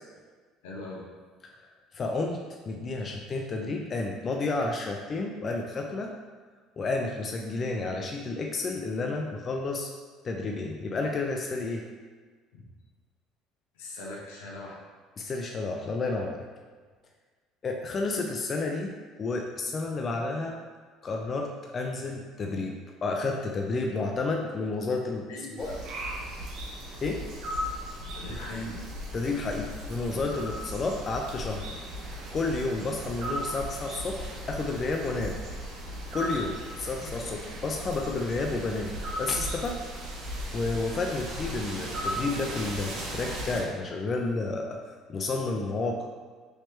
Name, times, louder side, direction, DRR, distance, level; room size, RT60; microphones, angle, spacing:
voice 1, 0.6-1.1 12.5-12.7 13.7-14.8 25.3-25.8 28.1-28.8, left 1 dB, 85° left, -3 dB, 0.8 m, -40 dB
voice 2, 1.9-6.1 6.8-9.9 10.2-11.8 15.2-16.5 17.6-20.6 21.0-25.3 25.6-25.7 27.0-27.2 29.1-31.6 32.3-35.4 36.1-39.8 40.5-44.8 45.1-46.1, left 3 dB, 40° left, 1 dB, 0.4 m, -31 dB
sound 1, 25.6-43.6, equal, 65° right, 0.9 m, -37 dB
3.2 x 2.9 x 3.2 m, 1.5 s
supercardioid pair, 80°, 0 cm